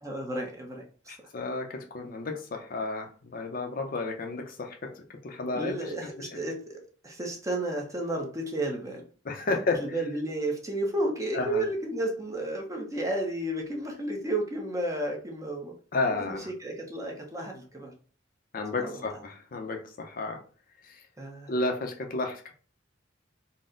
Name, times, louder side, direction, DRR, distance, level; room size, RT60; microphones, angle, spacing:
voice 1, 0.0-1.2 5.5-9.0 9.5-15.7 16.2-17.9 18.8-19.0 21.2-21.5, right 1 dB, 15° right, 0 dB, 0.8 m, -32 dB
voice 2, 1.1-4.8 5.2-5.9 6.2-6.3 9.2-9.8 11.3-11.6 15.9-16.5 18.5-20.4 20.8-21.0 21.5-22.5, left 3 dB, 50° left, 3 dB, 0.6 m, -32 dB
4.1 x 2.1 x 3.7 m, 0.40 s
head